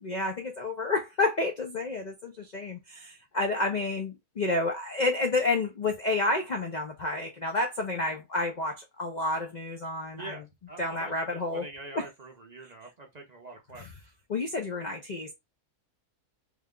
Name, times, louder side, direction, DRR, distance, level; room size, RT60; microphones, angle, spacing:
voice 1, 0.0-10.4 10.8-11.7 11.9-12.1 13.7-14.0 14.3-15.3, left 2 dB, 85° left, 0.4 m, -30 dB
voice 2, 10.2-13.9, right 3 dB, 50° right, 0.5 m, -44 dB
3.3 x 2.2 x 3.6 m
omnidirectional pair, 1.6 m